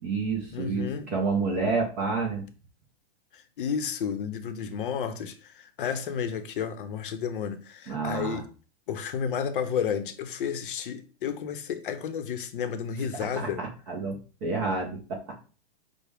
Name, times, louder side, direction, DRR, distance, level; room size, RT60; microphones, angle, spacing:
voice 1, 0.0-2.4 7.9-8.4 13.4-15.2, right 4 dB, 15° right, 0.4 m, -29 dB
voice 2, 0.5-1.1 3.3-8.4 8.9-13.6, left 7 dB, 55° left, 0.6 m, -32 dB
5.9 x 2.1 x 3.4 m
hypercardioid pair, 160°, 31 cm